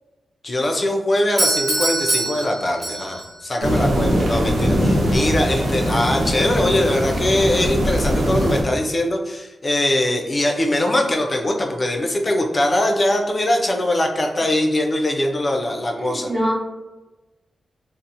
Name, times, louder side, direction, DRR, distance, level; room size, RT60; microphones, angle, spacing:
voice 1, 0.4-16.3, left 1 dB, 35° left, 2 dB, 0.4 m, -21 dB
Doorbell, 1.4-3.4, right 1 dB, 60° right, 1.3 m, -23 dB
sound 1, 3.6-8.6, equal, 85° right, 0.6 m, -21 dB
voice 2, 16.0-16.5, equal, 15° right, -3 dB, 0.7 m, -24 dB
2.7 x 2.0 x 2.6 m, 1.1 s
wide cardioid pair, 90°, 0 cm